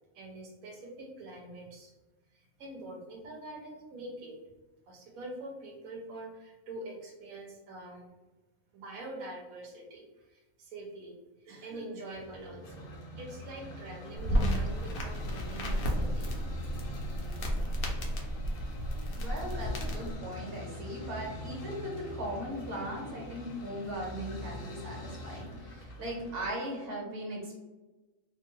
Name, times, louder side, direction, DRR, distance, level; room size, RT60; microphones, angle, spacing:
voice 1, 0.1-1.9 2.3-4.4 4.9-8.1 8.7-11.1 11.4-12.9 13.2-16.3, right 1 dB, 80° right, 0 dB, 1.0 m, -45 dB
sound 1, 12.1-26.5, equal, 60° left, 0.6 m, -44 dB
sound 2, 14.2-20.2, equal, 75° left, 1.0 m, -32 dB
voice 2, 19.2-27.6, equal, 45° right, -2 dB, 1.1 m, -38 dB
2.8 x 2.3 x 2.9 m, 1.1 s
omnidirectional pair, 1.5 m